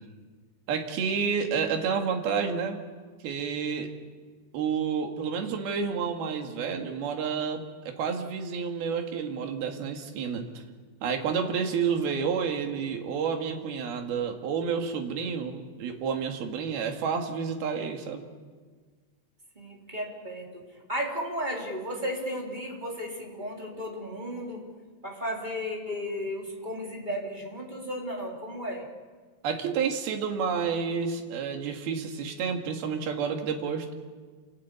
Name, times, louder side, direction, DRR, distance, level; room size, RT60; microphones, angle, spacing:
voice 1, 0.7-2.8 3.2-3.9 4.5-10.6 11.0-18.3 29.4-33.9, right 6 dB, 65° right, 4 dB, 3.8 m, -30 dB
voice 2, 19.5-20.6 20.9-24.6 25.0-28.9, equal, 10° right, -1 dB, 3.3 m, -34 dB
28.5 x 18.5 x 8.6 m, 1.5 s
omnidirectional pair, 4.9 m